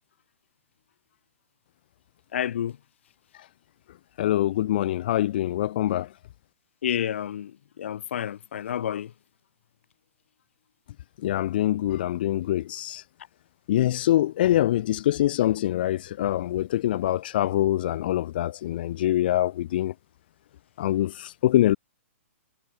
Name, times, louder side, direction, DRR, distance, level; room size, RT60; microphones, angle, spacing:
voice 1, 2.3-2.8 6.8-9.1, left 10 dB, 60° left, 2.7 m, -30 dB
voice 2, 4.2-6.1 11.2-13.0 13.7-19.9 20.8-21.8, left 13 dB, 40° left, 0.4 m, -24 dB
hypercardioid pair, 165°, 7 cm